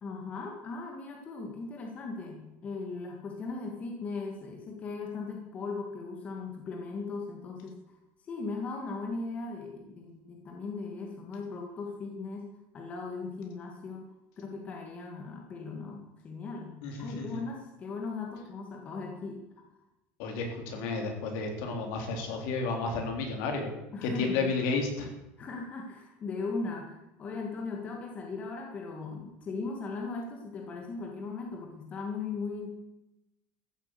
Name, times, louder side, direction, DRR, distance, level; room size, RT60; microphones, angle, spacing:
voice 1, 0.0-7.8 8.3-14.1 14.4-19.4 23.9-24.4 25.4-32.7, left 4 dB, 25° left, 1 dB, 1.7 m, -38 dB
voice 2, 16.8-17.4 20.2-23.7 24.0-25.1, left 3 dB, 65° left, 3 dB, 3.4 m, -32 dB
14.0 x 8.6 x 8.1 m, 0.93 s
cardioid pair, 180°, 6 cm